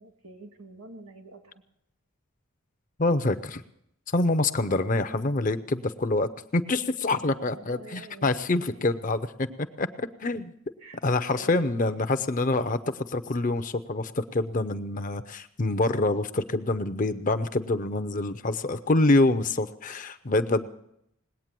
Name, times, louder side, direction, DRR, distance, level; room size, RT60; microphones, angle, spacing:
voice 1, 0.0-1.5 7.1-8.3 8.7-8.8 10.8-11.0 11.3-11.8, right 2 dB, 75° right, 6 dB, 2.0 m, -47 dB
voice 2, 3.0-3.6 4.1-9.5 9.8-9.9 10.2-10.5 11.0-20.7, left 2 dB, 35° left, 11 dB, 0.6 m, -26 dB
20.0 x 8.8 x 7.5 m, 0.78 s
head